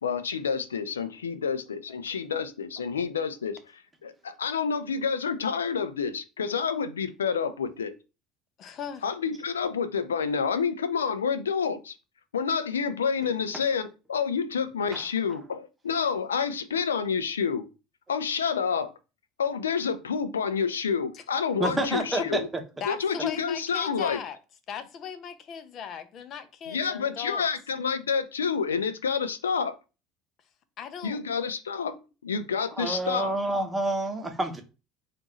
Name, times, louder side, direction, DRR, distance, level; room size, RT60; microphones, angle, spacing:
voice 1, 0.0-7.9 9.0-11.9 12.3-17.7 18.1-18.9 19.4-22.5 22.9-24.2 26.7-29.8 31.0-32.0 32.2-33.3, left 6 dB, 90° left, 0.4 m, -28 dB
voice 2, 8.6-9.0 21.1-21.2 22.8-24.4 24.7-27.5 30.8-31.2, left 8 dB, 50° left, 0.7 m, -38 dB
voice 3, 21.6-22.4 32.8-34.6, right 2 dB, 15° right, 1.0 m, -28 dB
3.7 x 2.5 x 3.0 m
hypercardioid pair, 70°, 0 cm